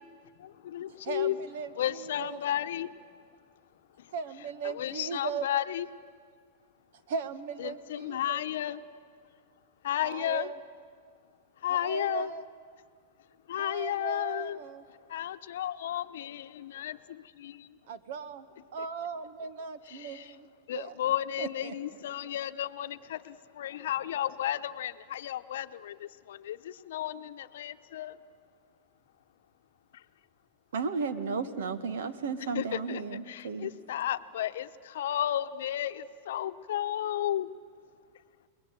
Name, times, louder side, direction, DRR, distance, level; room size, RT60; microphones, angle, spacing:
voice 1, 0.4-1.4 1.7-2.9 4.6-5.9 7.6-8.8 9.8-10.5 11.6-12.3 13.5-14.6 15.1-17.7 19.9-20.3 20.7-28.1 32.5-37.5, left 12 dB, 75° left, 10 dB, 0.9 m, -33 dB
voice 2, 1.0-2.4 4.1-5.5 7.1-8.4 10.0-10.6 11.7-12.4 13.6-14.8 17.9-18.4 18.7-20.9 21.4-21.7 22.2-22.3, right 5 dB, 65° right, 12 dB, 1.5 m, -38 dB
voice 3, 30.7-33.7, right 5 dB, 90° right, 10 dB, 1.7 m, -33 dB
28.5 x 21.0 x 9.3 m, 2.1 s
supercardioid pair, 145°, 0 cm